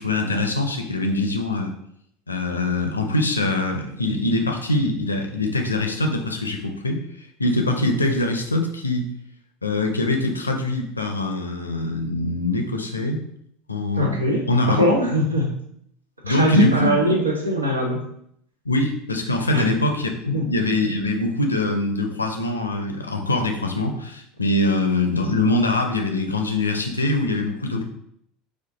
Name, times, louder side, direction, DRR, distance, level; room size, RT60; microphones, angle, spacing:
voice 1, 0.0-1.7 2.3-9.1 9.6-13.2 13.7-14.2 14.5-14.8 16.2-17.2 18.6-27.8, left 2 dB, 85° left, 4 dB, 0.5 m, -23 dB
voice 2, 13.9-15.5 16.3-18.0 19.5-19.7 20.3-20.5 27.7-27.8, equal, 85° right, 1 dB, 0.7 m, -21 dB
4.4 x 2.4 x 3.8 m, 0.71 s
figure-of-eight pair, 75°, 0 cm